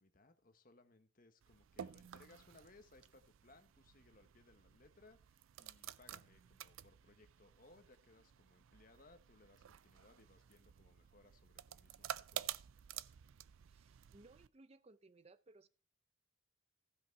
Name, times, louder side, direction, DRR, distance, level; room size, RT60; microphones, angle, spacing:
voice 1, 0.0-12.5, left 2 dB, 45° left, 1.2 m, -66 dB
sound 1, 1.4-14.5, right 10 dB, 85° right, 0.4 m, -51 dB
voice 2, 13.7-15.7, right 2 dB, 30° right, 0.5 m, -63 dB
15.0 x 5.5 x 4.7 m
head